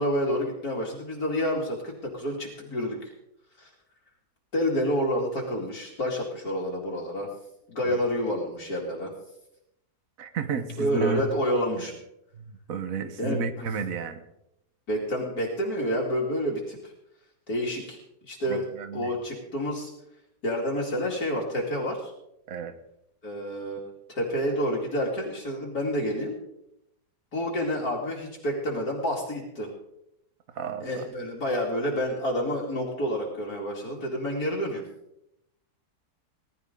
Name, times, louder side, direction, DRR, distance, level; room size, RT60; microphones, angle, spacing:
voice 1, 0.0-3.1 3.6-3.7 4.5-7.3 7.7-9.1 10.8-11.9 13.2-13.4 14.9-16.9 17.5-18.0 18.3-18.6 18.9-19.9 20.4-22.1 23.2-26.4 27.3-29.7 30.8-34.8, equal, 60° left, -2 dB, 2.9 m, -29 dB
voice 2, 10.2-11.2 11.7-11.9 12.3-14.2 18.4-19.1 22.5-22.8 30.5-31.0, right 5 dB, 55° right, 9 dB, 1.5 m, -32 dB
20.0 x 12.5 x 3.9 m, 0.82 s
omnidirectional pair, 1.8 m